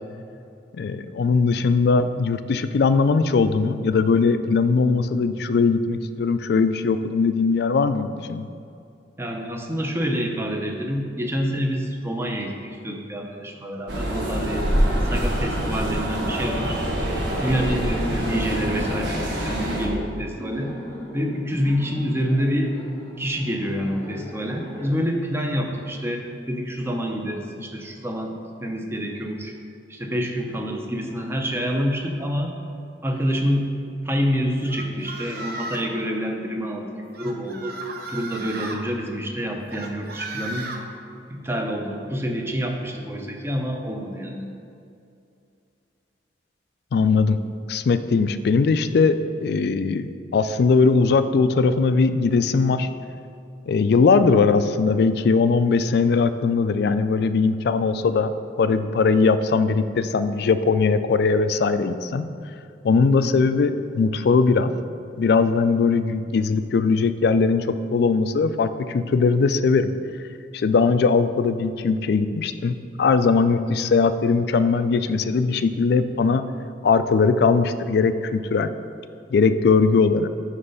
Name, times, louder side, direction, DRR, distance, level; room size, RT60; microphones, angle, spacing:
voice 1, 0.8-8.5 46.9-47.4 47.7-49.2 49.4-52.9 53.7-58.3 58.6-62.3 62.8-64.7 65.2-69.9 70.5-76.4 76.8-78.7 79.3-80.3, left 4 dB, 60° left, 11 dB, 0.3 m, -20 dB
voice 2, 9.2-14.7 15.0-16.8 17.1-20.7 21.1-22.7 23.2-29.5 29.9-32.6 33.0-33.7 34.0-36.9 37.2-37.8 38.1-40.7 41.3-44.4 58.7-58.8, equal, 15° right, 2 dB, 0.7 m, -27 dB
sound 1, 13.9-19.9, equal, 85° right, 1.2 m, -25 dB
Laughter, 14.1-25.0, equal, 15° left, 0.9 m, -40 dB
sound 2, 34.7-35.9 37.1-38.8 39.7-40.8, right 2 dB, 55° right, 0.7 m, -35 dB
9.5 x 3.2 x 5.4 m, 2.5 s
head